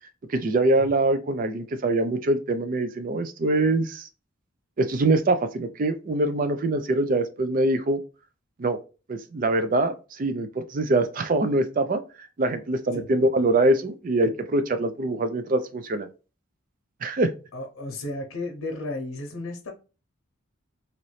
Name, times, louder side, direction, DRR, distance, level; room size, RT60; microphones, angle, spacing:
voice 1, 0.3-4.1 4.8-8.0 8.6-8.8 9.1-12.0 12.4-16.1 17.0-17.3, right 2 dB, 40° right, 0.4 m, -24 dB
voice 2, 17.5-19.7, left 2 dB, 80° left, 0.8 m, -33 dB
2.9 x 2.6 x 3.1 m
head